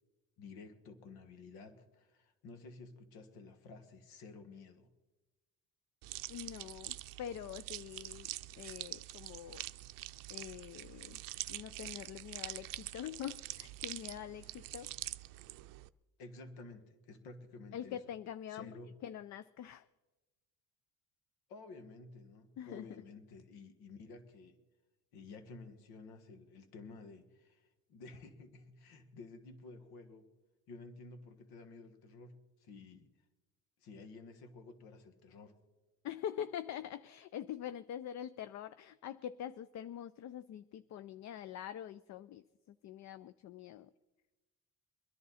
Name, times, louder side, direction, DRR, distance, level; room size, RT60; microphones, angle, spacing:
voice 1, 0.4-4.9 14.4-14.6 16.2-18.0 18.5-18.9 21.5-24.6 25.1-30.3 30.7-33.1 33.8-35.5, left 3 dB, 80° left, 9 dB, 1.7 m, -52 dB
sound 1, 6.0-15.9, right 17 dB, 65° right, 0.5 m, -45 dB
voice 2, 6.3-9.6 10.3-11.2 11.5-14.9 17.7-18.8 19.0-19.9 22.6-22.9 36.0-43.9, left 10 dB, 50° left, 14 dB, 0.5 m, -45 dB
23.0 x 11.0 x 4.2 m, 1.1 s
cardioid pair, 105°, 36 cm